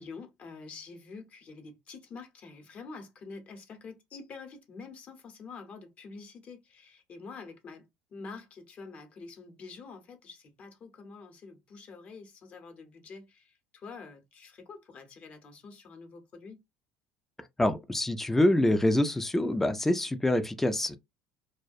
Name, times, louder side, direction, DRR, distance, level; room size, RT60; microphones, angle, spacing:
voice 1, 0.0-16.6, left 4 dB, 45° left, 0.8 m, -47 dB
voice 2, 17.6-21.0, left 1 dB, 10° left, 0.4 m, -25 dB
2.3 x 2.1 x 2.6 m
supercardioid pair, 85°, 3 cm